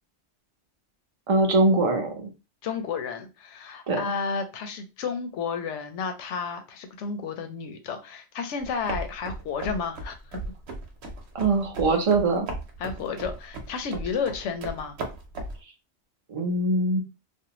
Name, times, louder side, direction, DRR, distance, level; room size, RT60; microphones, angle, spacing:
voice 1, 1.3-2.3 3.9-4.0 11.3-12.5 16.3-17.0, right 2 dB, 40° right, 3 dB, 0.5 m, -22 dB
voice 2, 2.6-10.4 12.8-15.0, left 5 dB, 80° left, 7 dB, 0.9 m, -32 dB
sound 1, 8.6-15.6, right 2 dB, 70° right, 0.9 m, -37 dB
2.6 x 2.1 x 2.8 m, 0.29 s
omnidirectional pair, 1.2 m